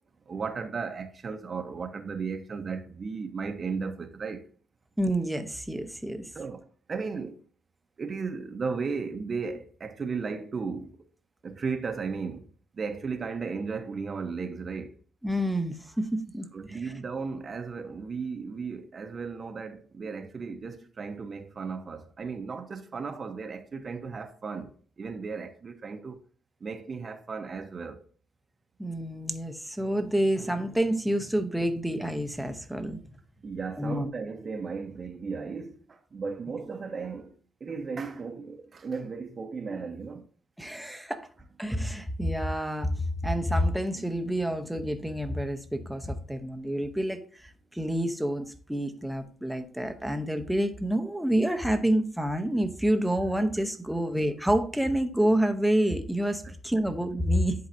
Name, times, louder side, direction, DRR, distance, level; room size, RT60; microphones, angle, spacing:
voice 1, 0.3-4.5 6.3-7.4 8.0-11.0 11.4-12.5 12.7-14.9 16.5-26.2 26.6-28.0 33.4-37.3 37.6-40.2 44.0-44.1, right 5 dB, 40° right, 0.9 m, -35 dB
voice 2, 5.0-6.2 15.2-16.8 28.8-33.0 33.8-34.1 40.6-41.2 41.6-57.5, equal, ahead, 0.8 m, -28 dB
10.5 x 3.9 x 2.7 m
cardioid pair, 90°, 0 cm